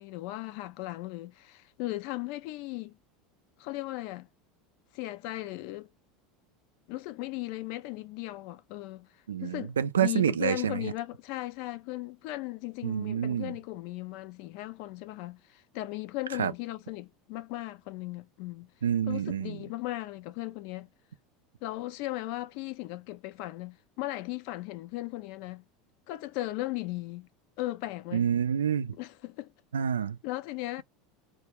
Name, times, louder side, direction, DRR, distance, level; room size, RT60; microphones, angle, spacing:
voice 1, 0.0-3.0 3.6-4.3 4.9-5.9 6.9-9.1 9.4-18.7 19.1-20.9 21.6-25.6 26.1-27.3 27.6-28.3 28.9-29.5 30.2-30.8, left 18 dB, 60° left, 0.4 m, -37 dB
voice 2, 9.3-10.9 12.8-13.6 16.4-16.5 18.8-19.6 28.1-29.0 29.7-30.2, right 8 dB, 85° right, 0.3 m, -28 dB
2.2 x 2.2 x 2.9 m
hypercardioid pair, 80°, 0 cm